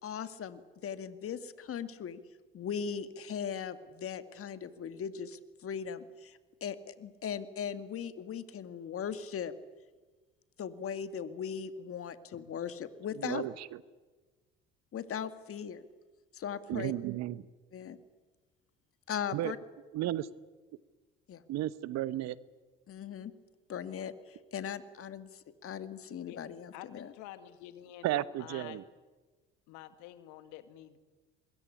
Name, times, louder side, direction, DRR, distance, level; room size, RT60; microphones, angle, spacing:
voice 1, 0.0-2.2 2.5-9.5 10.6-13.4 14.9-15.8 16.3-16.9 17.7-18.0 19.1-19.6 21.3-21.4 22.9-23.3 23.7-27.1, left 7 dB, 50° left, 11 dB, 2.1 m, -39 dB
voice 2, 13.2-13.7 16.7-17.4 19.3-19.5 19.9-20.3 21.5-22.4 28.0-28.8, right 14 dB, 60° right, 18 dB, 1.0 m, -33 dB
voice 3, 26.7-28.8 29.7-31.0, left 13 dB, 70° left, 11 dB, 2.1 m, -48 dB
24.5 x 21.5 x 9.9 m, 1.3 s
hypercardioid pair, 60°, 30 cm